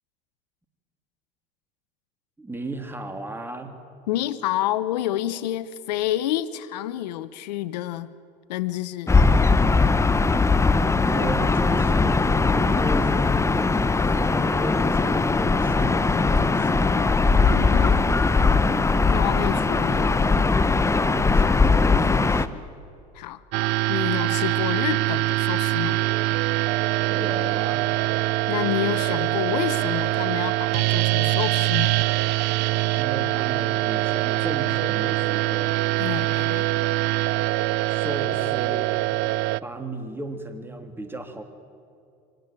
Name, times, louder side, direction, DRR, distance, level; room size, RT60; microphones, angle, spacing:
voice 1, 2.4-3.7 11.0-13.4 14.0-16.9 20.8-22.6 27.1-27.9 33.0-35.8 37.9-38.9 39.6-41.4, right 2 dB, 10° right, 6 dB, 3.1 m, -35 dB
voice 2, 4.1-8.1 8.5-9.1 17.5-18.0 19.1-20.3 23.1-23.4 23.9-26.0 28.5-32.0 36.0-36.7, left 13 dB, 80° left, 13 dB, 0.9 m, -29 dB
Gull seagull / Ocean, 9.1-22.5, left 3 dB, 15° left, 1.0 m, -20 dB
sound 1, 23.5-39.6, right 18 dB, 60° right, 0.5 m, -23 dB
24.5 x 18.5 x 9.2 m, 2.5 s
hypercardioid pair, 80°, 21 cm